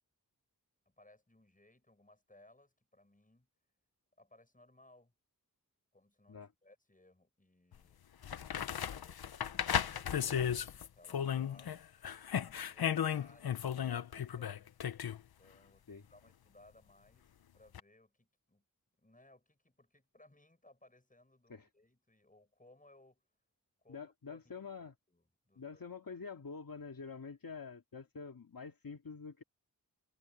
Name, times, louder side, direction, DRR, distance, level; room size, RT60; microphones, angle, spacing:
voice 1, 0.8-3.5 4.2-5.1 5.9-8.0 8.6-11.8 12.3-14.8 15.4-18.6 19.0-23.3 23.8-24.7 25.1-26.2, left 1 dB, 20° left, 6.8 m, -64 dB
sound 1, 7.7-7.8 8.2-11.8 12.0-15.2 17.7-17.8, left 9 dB, 85° left, 0.7 m, -35 dB
voice 2, 23.9-24.9 25.6-29.4, left 5 dB, 70° left, 2.5 m, -47 dB
wide cardioid pair, 70°, 36 cm